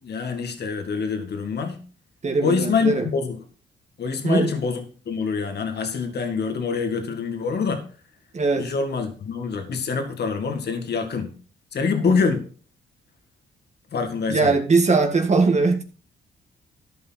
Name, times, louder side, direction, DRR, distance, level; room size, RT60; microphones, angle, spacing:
voice 1, 0.0-1.8 2.4-3.4 4.0-7.9 8.6-11.3 11.7-12.5 13.9-14.6, left 5 dB, 60° left, 6 dB, 2.1 m, -25 dB
voice 2, 2.2-3.0 4.2-4.5 8.3-8.7 14.3-15.8, right 4 dB, 35° right, 4 dB, 1.8 m, -20 dB
14.0 x 5.5 x 5.9 m, 0.40 s
cardioid pair, 85°, 19 cm